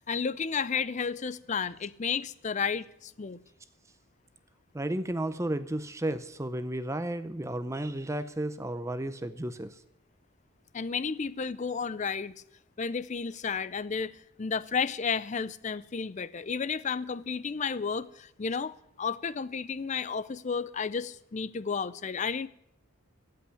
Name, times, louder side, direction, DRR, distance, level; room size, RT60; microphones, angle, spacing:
voice 1, 0.1-3.4 10.7-12.3 12.8-22.5, left 5 dB, 35° left, 0.4 m, -32 dB
voice 2, 4.7-9.8, right 1 dB, 15° right, 0.5 m, -33 dB
15.5 x 5.8 x 9.9 m
head